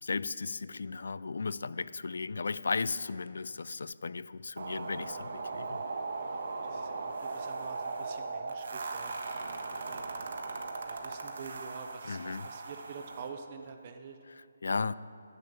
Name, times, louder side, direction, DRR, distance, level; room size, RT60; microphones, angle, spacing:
voice 1, 0.0-5.8 12.1-12.5 14.6-14.9, left 4 dB, 65° left, 0.3 m, -35 dB
sound 1, 4.6-13.3, right 3 dB, 55° right, 1.3 m, -38 dB
voice 2, 6.2-10.0 10.8-14.2, right 6 dB, 25° right, 0.5 m, -47 dB
10.5 x 6.7 x 8.8 m
hypercardioid pair, 175°, 0 cm